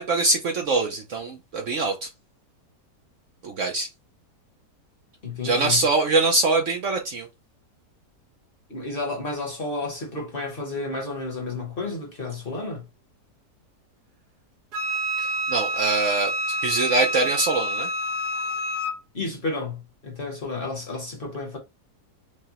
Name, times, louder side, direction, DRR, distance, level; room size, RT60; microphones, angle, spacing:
voice 1, 0.0-2.1 3.4-3.9 5.4-7.3 15.2-16.3 16.6-17.9, right 3 dB, 60° right, 0.9 m, -23 dB
voice 2, 5.2-5.8 8.7-12.9 19.1-21.6, left 3 dB, 40° left, 1.2 m, -31 dB
Wind instrument woodwind instrument, 14.7-19.0, right 1 dB, 80° right, 1.6 m, -27 dB
4.7 x 2.2 x 2.9 m
omnidirectional pair, 1.7 m